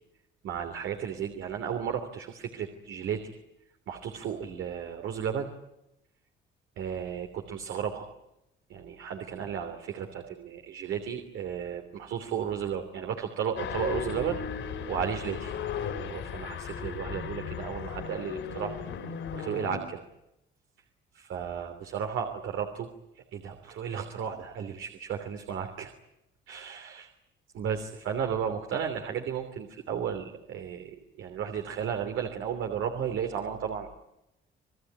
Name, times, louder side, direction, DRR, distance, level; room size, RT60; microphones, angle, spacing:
voice 1, 0.4-3.4 3.9-5.5 6.8-8.1 8.7-15.5 16.0-18.8 19.3-20.1 21.1-22.9 23.1-25.9 26.5-27.1 27.5-33.9, right 8 dB, 85° right, 5 dB, 3.1 m, -34 dB
sound 1, 13.6-19.8, left 7 dB, 80° left, 5.2 m, -36 dB
29.0 x 19.5 x 9.5 m, 0.86 s
cardioid pair, 90°, 20 cm